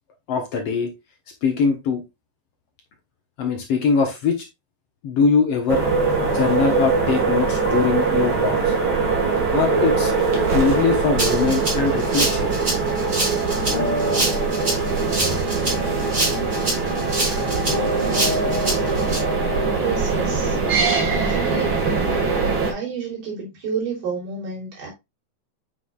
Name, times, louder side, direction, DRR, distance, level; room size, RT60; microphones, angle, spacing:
voice 1, 0.3-0.9 1.4-2.0 3.4-4.5 5.0-5.8 6.3-8.7 9.5-10.1 10.5-12.5, left 5 dB, 60° left, 1.9 m, -22 dB
sound 1, 5.7-22.7, right 4 dB, 45° right, 2.3 m, -22 dB
sound 2, 6.2-13.4 13.7-20.4, left 1 dB, 35° left, 1.6 m, -32 dB
Rattle (instrument), 11.2-19.2, right 2 dB, 25° right, 3.9 m, -26 dB
voice 2, 19.8-20.6 21.1-21.7 22.7-24.9, right 6 dB, 75° right, 5.0 m, -29 dB
8.2 x 5.8 x 2.4 m
omnidirectional pair, 3.6 m